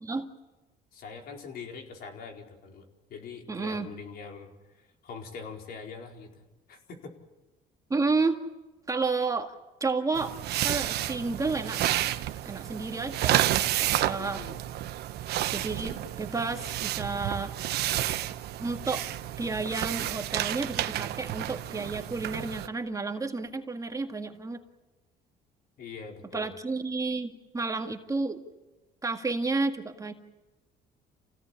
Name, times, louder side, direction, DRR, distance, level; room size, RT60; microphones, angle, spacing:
voice 1, 0.9-7.1 14.2-14.6 25.8-26.5, left 5 dB, 65° left, 2 dB, 4.7 m, -43 dB
voice 2, 3.5-3.9 7.9-8.4 8.9-9.5 9.8-10.3 10.6-11.8 12.5-13.5 13.8-14.4 15.5-17.5 18.6-19.1 19.4-24.6 26.3-28.4 29.0-30.1, right 3 dB, 20° right, 4 dB, 1.9 m, -31 dB
sound 1, 10.1-22.7, right 13 dB, 75° right, 1.2 m, -30 dB
28.5 x 17.0 x 8.5 m, 1.1 s
cardioid pair, 110°, 17 cm